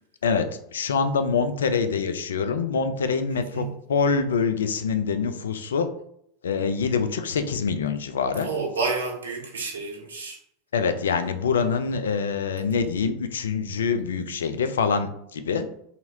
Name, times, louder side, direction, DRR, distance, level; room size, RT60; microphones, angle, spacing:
voice 1, 0.2-5.9 6.4-8.5 10.7-15.7, left 5 dB, 80° left, 0.4 m, -25 dB
voice 2, 3.3-3.7 8.4-10.4, right 4 dB, 80° right, 0.6 m, -30 dB
2.8 x 2.8 x 2.7 m
hypercardioid pair, 90°, 0 cm